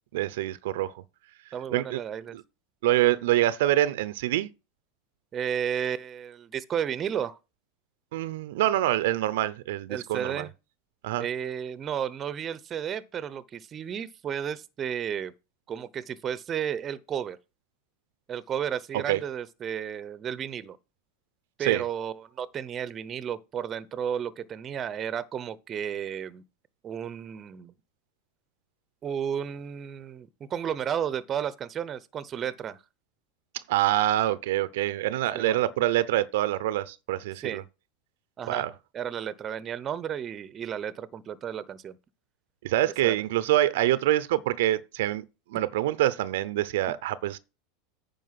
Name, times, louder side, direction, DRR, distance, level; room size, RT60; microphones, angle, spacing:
voice 1, 0.1-0.9 1.7-2.0 2.3-2.4 2.8-4.5 8.1-10.5 11.0-11.2 18.9-19.2 21.6-21.8 33.7-37.6 38.5-38.7 42.6-45.2 45.5-47.4, right 14 dB, 70° right, 0.7 m, -25 dB
voice 2, 1.5-2.4 5.3-7.4 9.9-10.5 11.2-15.3 15.7-17.4 18.3-20.8 21.6-26.4 26.8-27.7 29.0-32.8 35.3-35.6 37.4-37.6 38.4-38.6 38.9-42.0 42.9-43.2, right 8 dB, 35° right, 0.8 m, -33 dB
9.3 x 5.2 x 5.8 m
hypercardioid pair, 95°, 0 cm